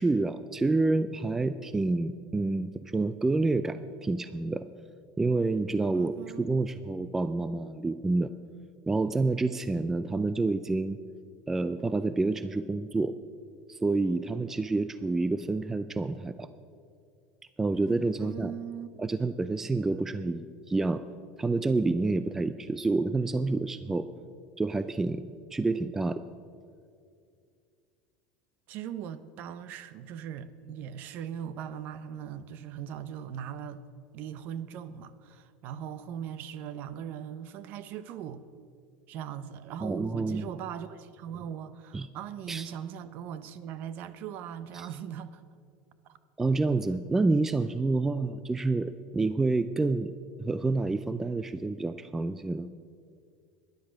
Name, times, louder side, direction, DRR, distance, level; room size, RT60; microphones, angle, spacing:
voice 1, 0.0-4.7 5.2-8.3 8.9-11.0 11.5-13.2 13.7-16.5 17.6-18.5 19.0-21.0 21.4-24.1 24.6-25.2 25.5-26.2 39.8-40.4 41.9-42.1 42.5-42.7 44.7-44.9 46.4-50.1 50.4-52.7, right 3 dB, 10° right, 0.3 m, -28 dB
voice 2, 5.9-6.5 18.2-18.9 28.7-33.8 34.1-38.4 39.1-45.4, right 9 dB, 50° right, 0.7 m, -39 dB
13.0 x 10.5 x 6.3 m
supercardioid pair, 145°, 4 cm